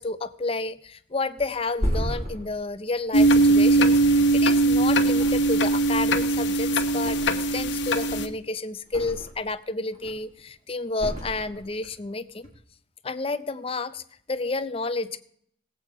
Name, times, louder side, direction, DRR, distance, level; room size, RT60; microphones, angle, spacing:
voice 1, 0.0-12.5 13.0-14.0 14.3-15.2, left 3 dB, 30° left, 11 dB, 0.6 m, -30 dB
Thump thud, 1.4-4.7 5.1-5.9 6.2-7.6 8.0-9.5 9.9-10.4 10.9-11.9 12.3-12.5, equal, 35° right, 3.2 m, -34 dB
sound 1, 3.1-8.3, right 2 dB, 75° left, 1.1 m, -20 dB
18.5 x 8.2 x 4.7 m, 0.66 s
head